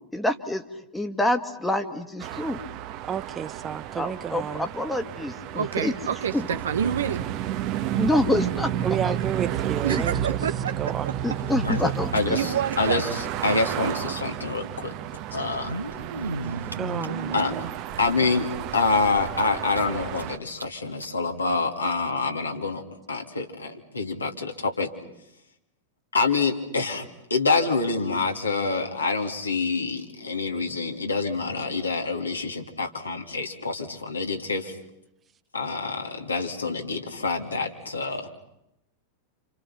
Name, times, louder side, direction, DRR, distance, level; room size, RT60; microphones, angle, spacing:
voice 1, 0.1-0.6 0.9-2.6 4.0-5.9 6.3-6.4 7.9-8.7 9.0-9.2 9.9-10.2 11.2-12.4, left 1 dB, 5° left, 1.8 m, -27 dB
sound 1, 2.2-20.4, right 11 dB, 40° right, 1.2 m, -32 dB
voice 2, 3.1-4.7 8.8-10.4 10.8-11.1 16.8-17.7, right 8 dB, 25° right, 1.0 m, -31 dB
voice 3, 5.6-7.2 9.8-10.8 12.3-13.0 13.8-14.0, right 8 dB, 65° right, 0.9 m, -28 dB
sound 2, 11.4-12.8 13.0-13.1 13.3-13.4 14.5-14.6 15.4-17.7 18.3-18.4 18.8-18.9 19.3-20.2 20.6-20.7 21.0-21.1 21.9-22.0, right 1 dB, 85° right, 1.8 m, -34 dB
voice 4, 11.7-14.9 15.3-15.7 17.3-17.6 18.0-22.8 23.1-24.9 26.1-27.0 27.3-34.8 35.5-38.3, left 3 dB, 80° left, 2.8 m, -26 dB
30.0 x 28.0 x 6.0 m
figure-of-eight pair, 90°, 0 cm